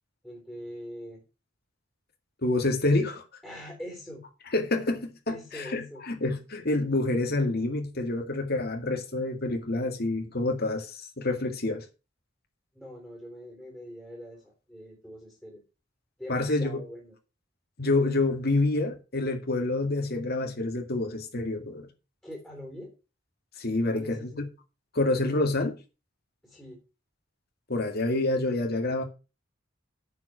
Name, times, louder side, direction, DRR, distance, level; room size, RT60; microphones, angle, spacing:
voice 1, 0.2-1.2 3.4-4.2 5.3-6.0 12.7-15.6 16.2-17.1 22.2-22.9 23.9-24.4 26.4-26.8, equal, 5° left, 3.1 m, -43 dB
voice 2, 2.4-3.2 4.5-11.8 16.3-16.8 17.8-21.9 23.6-24.4 24.9-25.8 27.7-29.0, left 2 dB, 55° left, 2.1 m, -27 dB
9.4 x 5.0 x 6.3 m
head